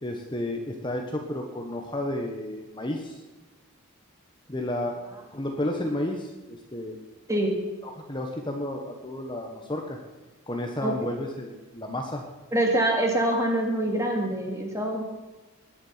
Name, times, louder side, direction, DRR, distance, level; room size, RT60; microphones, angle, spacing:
voice 1, 0.0-3.2 4.5-5.0 5.3-7.0 7.8-10.0 10.5-12.2, left 1 dB, 20° left, 2 dB, 1.5 m, -32 dB
voice 2, 12.5-15.0, right 1 dB, 15° right, 1 dB, 2.7 m, -25 dB
21.0 x 10.5 x 5.9 m, 1.2 s
head